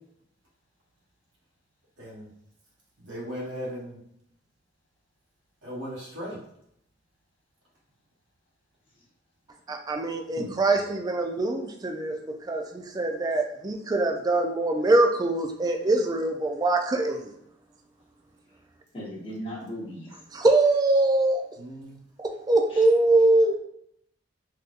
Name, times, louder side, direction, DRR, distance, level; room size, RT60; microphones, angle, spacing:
voice 1, 3.0-4.0 5.6-6.4 21.6-22.0, equal, 85° right, -5 dB, 1.0 m, -37 dB
voice 2, 9.7-17.3 20.3-21.4 22.2-23.5, right 2 dB, 20° right, 3 dB, 0.3 m, -23 dB
voice 3, 18.9-20.1 22.7-22.9, equal, 30° left, -7 dB, 1.1 m, -37 dB
3.7 x 2.7 x 2.4 m, 0.73 s
head